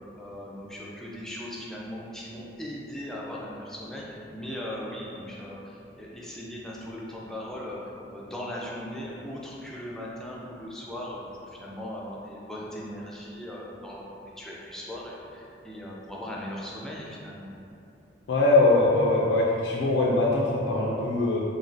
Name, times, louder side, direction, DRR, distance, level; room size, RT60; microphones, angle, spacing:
voice 1, 0.2-7.8 8.1-17.5, left 1 dB, 5° left, -5 dB, 0.3 m, -38 dB
voice 2, 18.3-21.4, left 2 dB, 90° left, -4 dB, 0.3 m, -22 dB
3.2 x 2.2 x 2.5 m, 2.6 s
head